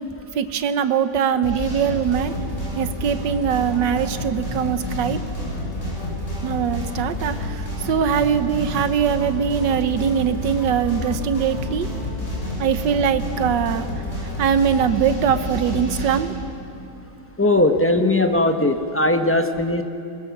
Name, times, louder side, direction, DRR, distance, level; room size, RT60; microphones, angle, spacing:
voice 1, 0.4-2.3 2.8-5.2 6.4-7.5 7.9-11.9 12.6-13.9 14.4-16.3, right 8 dB, 70° right, 11 dB, 1.5 m, -22 dB
sound 1, 1.4-16.2, left 1 dB, 35° left, 6.5 m, -29 dB
voice 2, 17.4-19.8, left 2 dB, 20° left, 6 dB, 0.4 m, -19 dB
22.0 x 20.5 x 7.2 m, 2.6 s
omnidirectional pair, 2.1 m